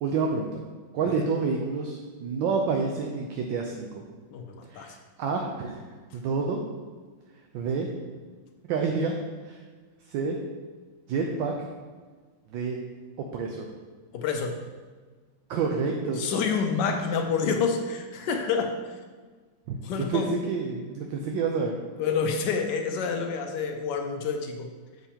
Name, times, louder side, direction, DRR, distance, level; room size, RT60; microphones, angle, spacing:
voice 1, 0.0-0.6 0.9-3.9 4.7-4.9 5.2-5.8 6.1-6.6 7.5-7.9 8.7-9.2 9.4-9.6 10.1-10.4 11.1-11.5 12.5-12.8 13.3-13.6 15.5-16.2 19.7-20.2 20.5-21.7, right 5 dB, 75° right, 2 dB, 1.3 m, -28 dB
voice 2, 4.3-5.0 14.1-14.6 16.2-18.8 19.8-20.3 22.0-24.7, left 5 dB, 70° left, 4 dB, 1.1 m, -28 dB
7.3 x 6.6 x 2.8 m, 1.4 s
omnidirectional pair, 2.2 m